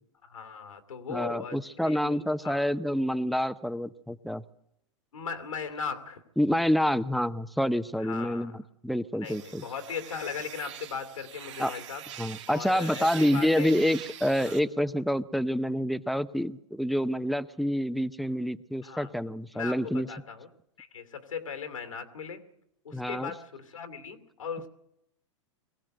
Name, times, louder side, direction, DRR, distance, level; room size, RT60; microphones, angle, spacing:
voice 1, 0.3-2.6 5.1-6.2 8.0-8.5 9.2-12.0 12.5-13.7 14.5-14.6 18.8-19.1 19.5-20.5 20.8-22.4 22.8-24.7, left 6 dB, 90° left, 8 dB, 2.7 m, -38 dB
voice 2, 1.1-4.4 6.4-9.7 11.6-11.7 12.2-20.1 22.9-23.3, equal, ahead, 13 dB, 0.8 m, -27 dB
sound 1, 9.2-14.6, right 10 dB, 65° right, 2.1 m, -44 dB
23.0 x 16.5 x 7.9 m, 0.79 s
hypercardioid pair, 115°, 16 cm